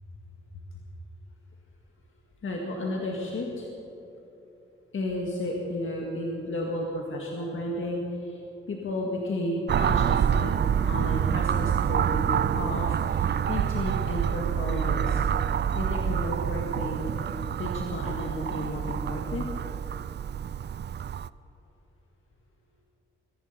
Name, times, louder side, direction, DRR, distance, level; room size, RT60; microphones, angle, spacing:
voice 1, 2.4-3.7 4.9-8.4 8.7-10.6 10.8-15.2 15.7-17.0 17.6-19.5, left 1 dB, 70° left, -1 dB, 1.8 m, -32 dB
sound 1, 9.7-21.3, right 8 dB, 55° right, 0.4 m, -27 dB
22.5 x 11.0 x 5.5 m, 3.0 s
cardioid pair, 85°, 21 cm